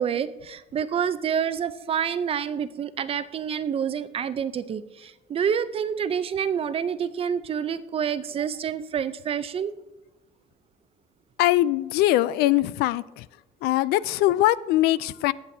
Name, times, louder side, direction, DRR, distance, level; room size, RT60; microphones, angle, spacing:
voice 1, 0.0-9.7, right 8 dB, 35° right, 0.5 m, -28 dB
voice 2, 11.4-13.2 13.6-15.3, left 15 dB, 80° left, 0.4 m, -22 dB
21.0 x 7.4 x 2.7 m
cardioid pair, 125°, 17 cm